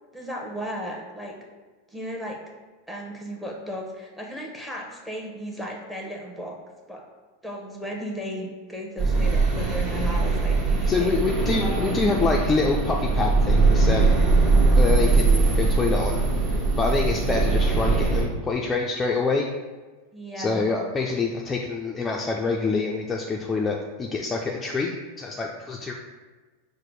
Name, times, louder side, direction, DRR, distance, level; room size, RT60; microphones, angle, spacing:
voice 1, 0.1-1.4 1.9-2.4 2.9-6.6 6.9-7.0 7.4-11.1 11.6-12.1 14.5-15.2 20.1-20.7, equal, 5° right, -1 dB, 0.9 m, -35 dB
sound 1, 9.0-18.2, right 3 dB, 35° right, 1.2 m, -21 dB
voice 2, 10.9-14.1 14.8-19.5 20.4-25.9, left 4 dB, 20° left, -1 dB, 0.4 m, -26 dB
4.9 x 2.1 x 4.6 m, 1.3 s
hypercardioid pair, 100°, 0 cm